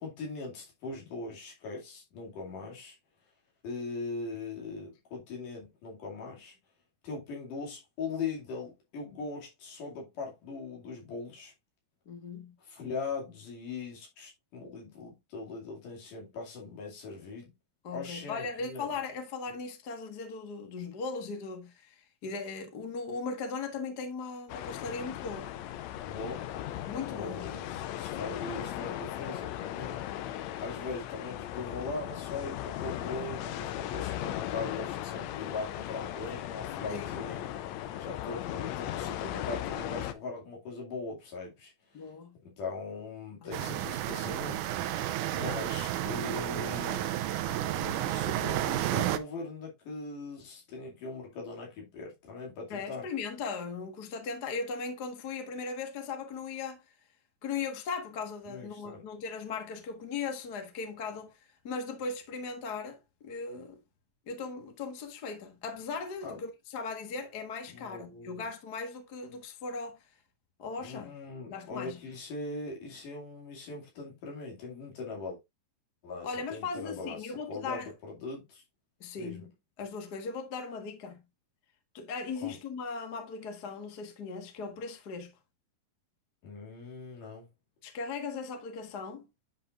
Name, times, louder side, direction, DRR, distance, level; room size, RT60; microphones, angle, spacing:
voice 1, 0.0-3.0 3.6-6.6 7.0-11.5 12.6-17.5 17.9-19.0 19.5-19.6 26.0-26.4 27.1-30.0 30.6-37.5 38.0-42.1 42.4-45.0 45.3-47.1 47.5-53.1 58.5-59.0 66.2-66.4 67.7-68.5 70.8-75.4 76.0-78.6 79.1-79.5 82.4-82.6 86.4-87.5, left 3 dB, 65° left, 4.0 m, -40 dB
voice 2, 12.0-12.5 17.8-25.5 26.8-27.5 36.9-37.1 41.9-42.4 43.5-43.8 52.7-57.0 57.4-61.3 61.6-63.8 64.3-70.0 70.6-71.1 71.5-72.0 76.2-77.9 79.0-79.5 79.8-81.2 81.9-85.3 87.8-89.3, left 4 dB, 45° left, 1.3 m, -38 dB
sound 1, 24.5-40.1, left 12 dB, 90° left, 1.6 m, -37 dB
sound 2, 43.5-49.2, right 13 dB, 75° right, 2.0 m, -31 dB
10.0 x 5.6 x 2.5 m
omnidirectional pair, 4.0 m